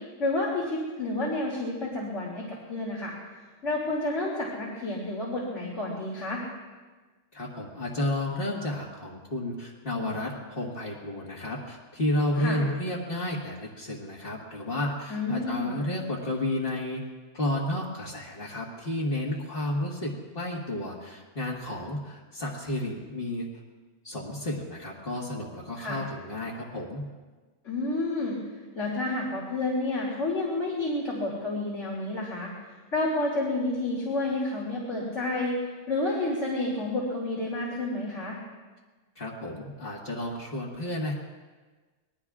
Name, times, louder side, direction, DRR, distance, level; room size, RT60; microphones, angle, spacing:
voice 1, 0.2-3.1 3.6-6.4 12.4-12.6 15.1-15.8 25.8-26.0 27.6-28.4 28.7-32.5 32.9-35.6 35.9-38.4, left 2 dB, 70° left, -4 dB, 3.1 m, -30 dB
voice 2, 7.3-17.0 17.3-23.5 24.0-27.1 39.2-41.1, left 1 dB, 45° left, -5 dB, 2.0 m, -32 dB
25.5 x 20.5 x 2.4 m, 1.3 s
omnidirectional pair, 1.3 m